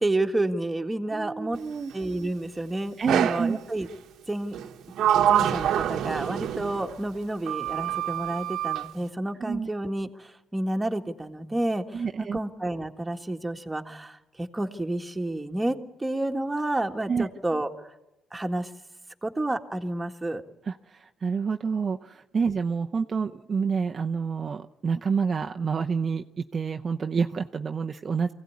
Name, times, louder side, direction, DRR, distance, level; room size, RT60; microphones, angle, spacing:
voice 1, 0.0-1.6 1.9-3.9 4.3-4.6 5.3-12.0 12.3-17.9 18.3-18.7 19.2-20.4, right 1 dB, 15° right, 4 dB, 1.8 m, -30 dB
voice 2, 1.1-1.9 3.0-3.6 9.4-9.7 11.9-12.4 17.1-17.3 20.6-28.3, right 5 dB, 40° right, 4 dB, 0.7 m, -28 dB
Sliding door, 3.1-3.5 4.5-7.0 7.5-8.9, right 10 dB, 80° right, 1.2 m, -26 dB
23.5 x 16.5 x 9.7 m, 0.95 s
cardioid pair, 90°, 0 cm